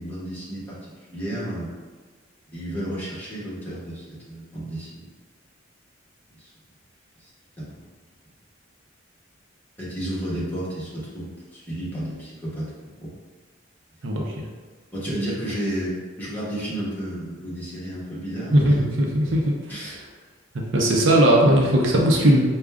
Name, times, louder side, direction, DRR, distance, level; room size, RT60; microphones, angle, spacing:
voice 1, 0.0-1.7 2.5-5.1 6.3-6.5 7.2-7.3 7.6-7.8 9.8-13.1 14.9-18.7 19.7-20.0, right 1 dB, 10° left, -10 dB, 1.4 m, -32 dB
voice 2, 14.0-14.4 18.5-19.5 20.7-22.4, right 1 dB, 75° right, -1 dB, 0.7 m, -18 dB
5.0 x 2.3 x 3.5 m, 1.4 s
head